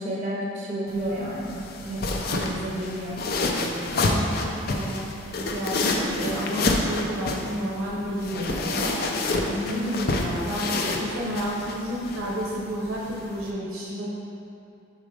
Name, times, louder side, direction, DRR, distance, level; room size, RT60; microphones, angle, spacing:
voice 1, 0.0-1.6 1.8-3.2, right 1 dB, 35° right, -4 dB, 0.7 m, -31 dB
sound 1, 0.9-13.5, left 2 dB, 45° left, 0.4 m, -29 dB
voice 2, 3.9-5.1 5.5-8.9 9.5-14.0, equal, 80° right, -5 dB, 0.9 m, -30 dB
5.1 x 4.2 x 4.9 m, 2.6 s
head